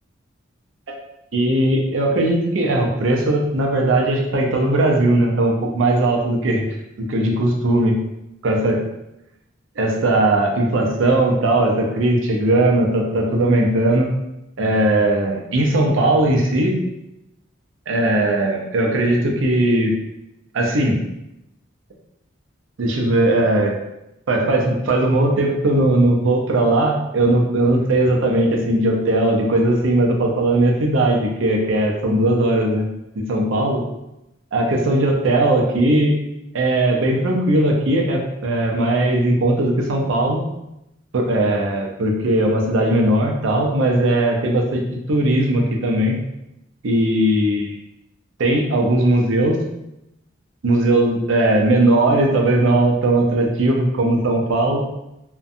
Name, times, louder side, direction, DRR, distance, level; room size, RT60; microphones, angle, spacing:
voice 1, 1.3-6.7 7.0-8.0 8.4-8.8 9.8-14.1 14.6-16.8 17.9-20.0 20.5-21.0 22.8-23.8 24.3-32.9 33.2-33.8 34.5-36.1 36.5-40.4 41.1-44.8 45.1-46.2 46.8-47.8 48.4-49.6 50.6-54.8, right 1 dB, 75° right, 1 dB, 0.5 m, -18 dB
2.5 x 2.2 x 2.5 m, 0.87 s
head